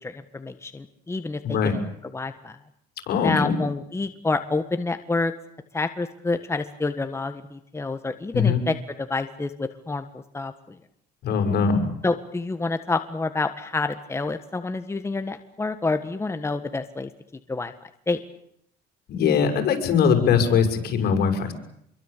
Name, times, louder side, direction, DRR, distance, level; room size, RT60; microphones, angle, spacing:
voice 1, 0.0-1.8 2.1-2.5 3.2-5.3 5.7-10.0 10.3-10.5 12.0-17.1 17.5-17.7 18.1-18.2, left 3 dB, 15° left, 9 dB, 1.7 m, -28 dB
voice 2, 1.4-1.8 3.1-3.6 8.3-8.6 11.2-11.8 19.1-21.5, left 6 dB, 70° left, 6 dB, 6.7 m, -21 dB
26.5 x 23.5 x 8.5 m, 0.73 s
cardioid pair, 110°, 17 cm